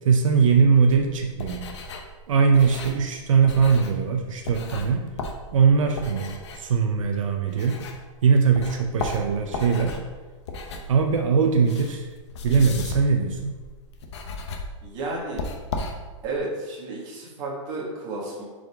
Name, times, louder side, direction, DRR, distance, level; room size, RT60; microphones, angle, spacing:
voice 1, 0.0-1.7 2.3-5.1 5.5-7.8 8.2-10.0 10.9-12.1 12.4-13.5, right 5 dB, 75° right, 4 dB, 0.8 m, -21 dB
sound 1, 0.9-8.2 8.5-16.4, left 2 dB, 60° left, 1.0 m, -36 dB
voice 2, 14.8-15.5 16.2-18.4, right 2 dB, 25° right, -4 dB, 1.8 m, -32 dB
7.7 x 5.1 x 3.6 m, 1.3 s
supercardioid pair, 175°, 17 cm